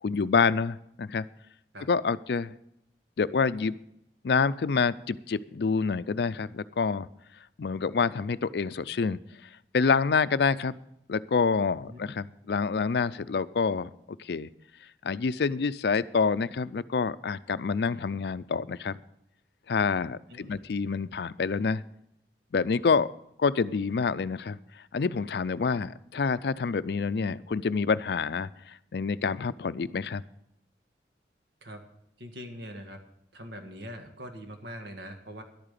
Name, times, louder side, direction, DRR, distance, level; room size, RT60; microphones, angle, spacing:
voice 1, 0.0-1.3 1.9-2.5 3.2-3.8 4.2-7.1 7.6-9.2 9.7-10.8 11.1-13.9 14.2-14.5 15.0-19.0 19.7-21.8 22.5-23.1 23.4-24.6 24.9-30.2, left 5 dB, 65° left, 16 dB, 0.4 m, -27 dB
voice 2, 20.3-20.6 31.6-31.8 32.2-33.0 33.3-35.4, equal, 85° right, 5 dB, 1.8 m, -42 dB
11.5 x 8.8 x 6.7 m, 0.77 s
head